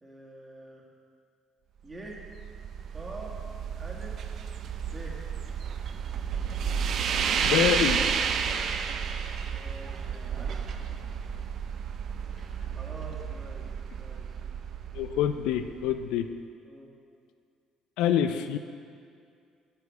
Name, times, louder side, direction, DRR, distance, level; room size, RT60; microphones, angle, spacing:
voice 1, 0.0-0.8 1.8-2.2 2.9-3.4 3.8-4.2 4.9-5.2 9.5-10.7 12.3-13.7 13.9-14.3 16.6-16.9, right 2 dB, 25° right, -2 dB, 1.6 m, -46 dB
sound 1, 2.0-16.1, right 7 dB, 60° right, 0.4 m, -32 dB
voice 2, 7.4-8.0 14.9-16.3 18.0-18.6, left 10 dB, 80° left, 9 dB, 0.3 m, -26 dB
8.3 x 4.9 x 4.7 m, 2.3 s
supercardioid pair, 65°, 0 cm